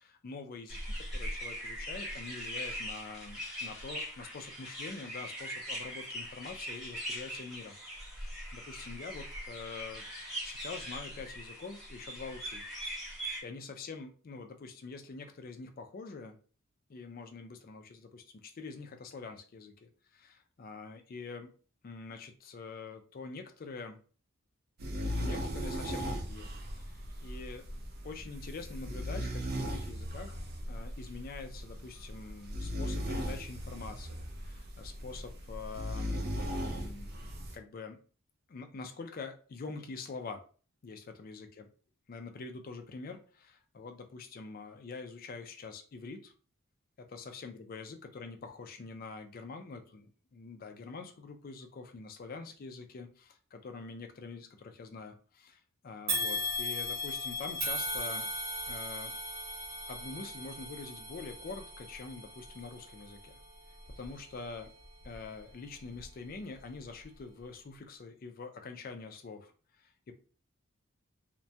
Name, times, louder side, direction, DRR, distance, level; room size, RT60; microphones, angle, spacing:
voice 1, 0.0-7.8 8.1-10.0 10.4-12.6 13.4-16.4 16.9-21.5 21.8-24.0 25.2-26.5 26.8-27.7 28.0-30.4 30.7-36.3 36.6-38.0 38.5-40.4 40.8-41.7 42.1-46.3 47.0-58.3 58.7-59.2 59.9-63.4 64.0-64.7 65.0-69.5 69.8-70.1, left 4 dB, 45° left, 6 dB, 0.3 m, -45 dB
sound 1, 0.7-13.4, equal, ahead, 0.9 m, -41 dB
sound 2, 24.8-37.6, equal, 45° right, 0.4 m, -38 dB
sound 3, 56.1-65.4 65.9-66.1 67.0-67.1, left 1 dB, 70° right, 1.0 m, -38 dB
2.2 x 2.1 x 2.6 m, 0.39 s
head